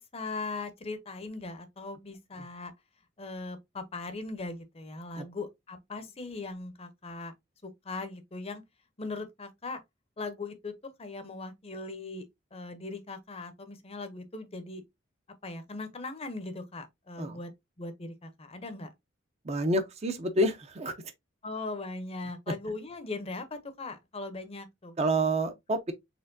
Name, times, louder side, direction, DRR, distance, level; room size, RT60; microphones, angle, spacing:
voice 1, 0.0-2.7 3.2-7.3 7.6-8.6 9.0-9.8 10.2-12.3 12.5-14.8 15.4-17.5 17.8-18.9 21.4-24.9, left 3 dB, 30° left, 0.7 m, -39 dB
voice 2, 19.4-20.9 25.0-25.9, right 1 dB, 30° right, 0.6 m, -28 dB
4.3 x 3.5 x 2.6 m
head